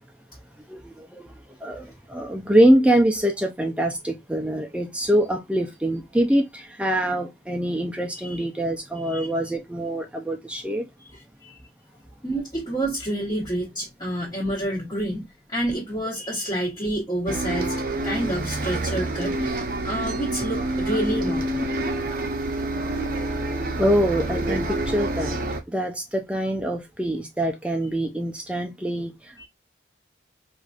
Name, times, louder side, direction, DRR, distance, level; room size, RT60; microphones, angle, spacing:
voice 1, 0.7-1.3 1.6-10.9 23.8-25.4 25.7-29.5, right 1 dB, 5° right, 0.4 m, -24 dB
voice 2, 11.1-11.5 12.2-17.7 18.0-19.6 19.8-21.7 29.4-29.5, right 1 dB, 25° left, 1.1 m, -29 dB
Bus, 17.3-25.6, right 2 dB, 50° right, 0.6 m, -27 dB
4.6 x 2.6 x 2.4 m
head